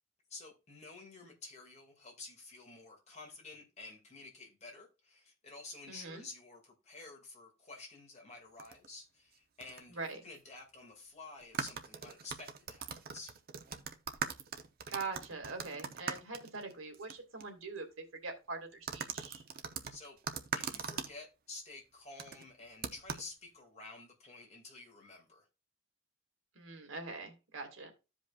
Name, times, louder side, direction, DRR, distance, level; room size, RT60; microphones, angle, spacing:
voice 1, 0.3-10.0 10.2-13.3 19.9-20.2 20.5-25.5, left 3 dB, 35° left, 2.2 m, -51 dB
voice 2, 5.9-6.2 9.9-10.2 14.9-19.4 26.6-27.9, right 3 dB, 85° right, 2.1 m, -43 dB
sound 1, 8.6-8.9 9.6-9.8 10.1-10.2 11.4-17.1 17.4-17.5 18.9-21.1 22.2-22.4 22.8-23.3, right 6 dB, 45° right, 0.7 m, -40 dB
15.0 x 5.1 x 2.4 m
head